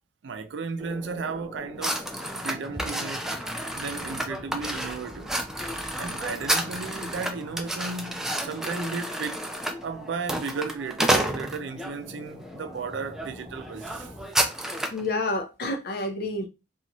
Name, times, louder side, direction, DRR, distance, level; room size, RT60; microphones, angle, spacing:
voice 1, 0.2-2.0 2.4-3.3 3.7-5.3 6.0-9.5 9.8-14.1, right 4 dB, 85° right, 0.4 m, -34 dB
sound 1, 0.8-14.3, left 1 dB, 15° left, 1.0 m, -44 dB
sound 2, 1.8-11.9 12.5-12.8 13.1-13.3 13.5-15.0, right 1 dB, 5° right, 0.3 m, -30 dB
voice 2, 14.9-16.5, left 2 dB, 55° left, 0.6 m, -29 dB
2.6 x 2.4 x 2.9 m
head